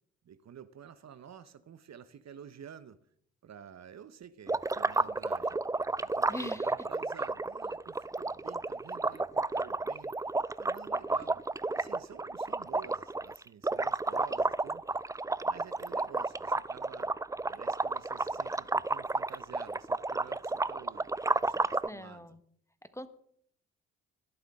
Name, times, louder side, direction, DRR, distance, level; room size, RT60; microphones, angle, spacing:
voice 1, 0.2-3.0 3.4-5.6 6.0-10.3 10.6-14.8 15.4-17.1 17.5-21.1 21.4-22.4, right 8 dB, 50° right, 13 dB, 1.1 m, -51 dB
bubbles thru straw, 4.5-21.9, right 3 dB, 10° right, 0.5 m, -32 dB
voice 2, 6.3-6.7 21.8-22.4 22.9-23.1, left 1 dB, 10° left, 11 dB, 1.5 m, -41 dB
20.5 x 11.5 x 3.7 m, 0.65 s
hypercardioid pair, 45°, 34 cm